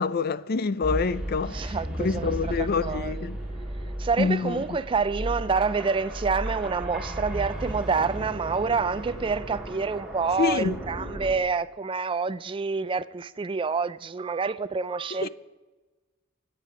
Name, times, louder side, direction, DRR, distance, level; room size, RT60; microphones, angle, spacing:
voice 1, 0.0-3.4 4.2-4.5 10.4-10.8 15.2-15.3, left 5 dB, 50° left, 0.4 m, -26 dB
sound 1, 0.8-11.3, right 1 dB, 5° right, 2.1 m, -35 dB
voice 2, 1.5-3.3 4.0-15.3, right 4 dB, 25° right, 0.3 m, -27 dB
23.0 x 8.3 x 4.9 m
head